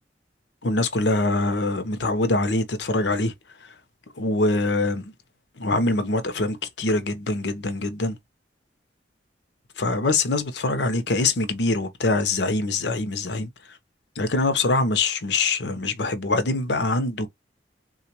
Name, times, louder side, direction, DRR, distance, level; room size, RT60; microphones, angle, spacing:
voice 1, 0.6-3.3 4.2-5.1 5.6-8.2 9.8-13.5 14.2-17.3, left 2 dB, 70° left, 0.7 m, -24 dB
3.8 x 2.4 x 2.8 m
head